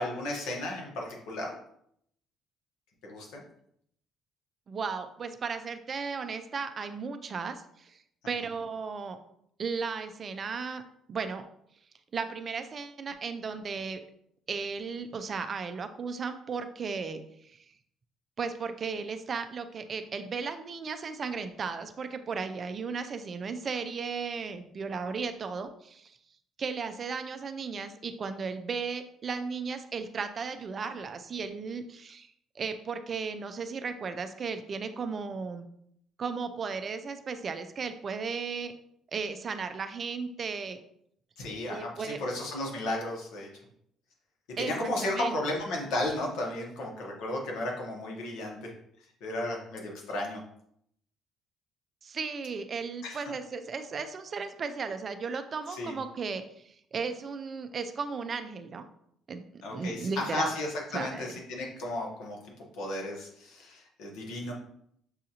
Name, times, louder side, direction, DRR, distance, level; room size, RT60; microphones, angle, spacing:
voice 1, 0.0-1.5 3.0-3.4 41.4-43.5 44.6-48.7 49.2-50.4 53.0-53.2 55.7-55.9 59.6-62.4 62.7-64.5, left 1 dB, 90° left, -1 dB, 1.1 m, -34 dB
voice 2, 4.7-8.0 8.3-9.2 9.6-10.8 11.1-11.5 12.1-14.0 14.5-17.7 18.4-26.2 26.6-32.3 32.6-35.7 36.2-38.7 39.1-40.8 41.7-42.2 44.6-45.4 52.0-58.9 59.3-60.5 60.9-61.3, right 5 dB, 30° right, 9 dB, 0.3 m, -35 dB
6.2 x 2.5 x 2.8 m, 0.71 s
cardioid pair, 160°, 0 cm